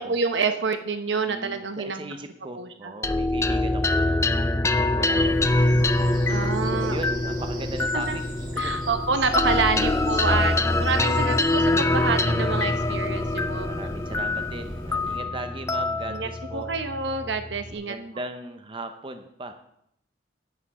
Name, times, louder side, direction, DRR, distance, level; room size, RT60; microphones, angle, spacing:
voice 1, 0.0-2.1 2.5-2.9 6.3-7.0 8.1-8.2 8.6-13.7 16.1-18.0, right 4 dB, 70° right, 8 dB, 1.0 m, -27 dB
voice 2, 1.2-4.3 4.9-5.7 6.7-8.2 8.6-8.7 9.7-11.1 13.6-16.7 17.7-19.5, right 2 dB, 25° right, 8 dB, 0.7 m, -38 dB
sound 1, 3.0-17.7, left 2 dB, 15° left, 0.4 m, -24 dB
Bird vocalization bird call bird song, 5.1-15.2, equal, 50° right, 4.8 m, -39 dB
11.5 x 8.6 x 4.8 m, 0.75 s
head